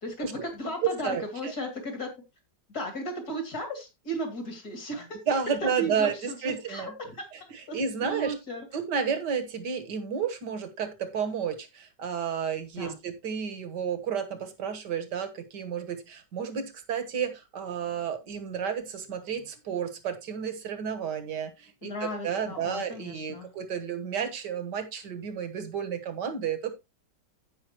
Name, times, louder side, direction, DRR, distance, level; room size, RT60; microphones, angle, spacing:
voice 1, 0.0-2.1 2.7-5.2 5.6-6.4 6.7-7.3 7.7-8.7 12.8-13.0 21.8-23.5, right 1 dB, 60° left, 5 dB, 3.2 m, -35 dB
voice 2, 0.8-1.5 5.3-6.9 7.3-8.3 8.7-26.7, right 7 dB, 75° right, 8 dB, 2.0 m, -31 dB
15.5 x 5.4 x 2.9 m, 0.23 s
omnidirectional pair, 1.9 m